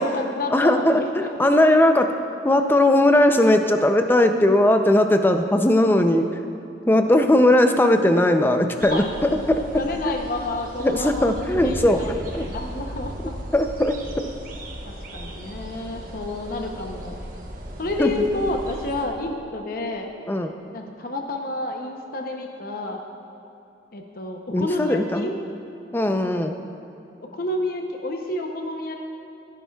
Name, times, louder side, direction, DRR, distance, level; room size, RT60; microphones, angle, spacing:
voice 1, 0.0-1.8 8.9-9.1 9.5-13.3 14.9-17.2 17.8-20.1 20.7-23.0 23.9-25.4 27.3-29.0, left 2 dB, 50° left, 3 dB, 0.7 m, -30 dB
voice 2, 0.5-2.1 2.4-6.3 6.9-9.0 9.5-9.6 10.0-10.1 10.8-12.4 13.5-14.0 18.0-18.2 20.3-20.5 24.5-25.3 25.9-26.5, left 1 dB, 10° left, 6 dB, 0.4 m, -18 dB
sound 1, 8.8-19.1, right 1 dB, 50° right, 1.1 m, -36 dB
15.0 x 11.0 x 2.3 m, 2.9 s
head